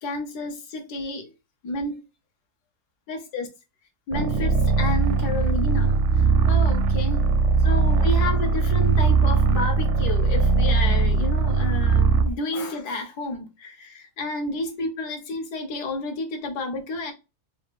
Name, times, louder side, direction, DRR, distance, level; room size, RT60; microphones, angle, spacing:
voice 1, 0.0-1.3 1.6-2.0 3.1-3.5 4.1-7.2 7.6-17.1, left 2 dB, 80° left, 1.6 m, -31 dB
sound 1, 4.1-12.3, right 4 dB, 70° right, 0.7 m, -20 dB
4.7 x 2.5 x 3.4 m
omnidirectional pair, 1.7 m